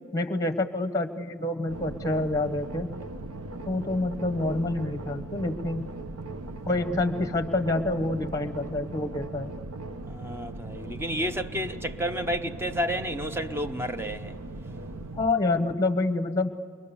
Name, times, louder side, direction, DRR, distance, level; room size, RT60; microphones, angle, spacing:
voice 1, 0.1-2.9 3.7-5.9 6.6-9.5 15.2-16.6, left 2 dB, 15° left, 1.0 m, -27 dB
sound 1, 1.7-15.3, right 2 dB, 70° right, 0.9 m, -39 dB
voice 2, 10.1-14.3, equal, 10° right, 0.7 m, -31 dB
29.5 x 23.5 x 6.9 m
head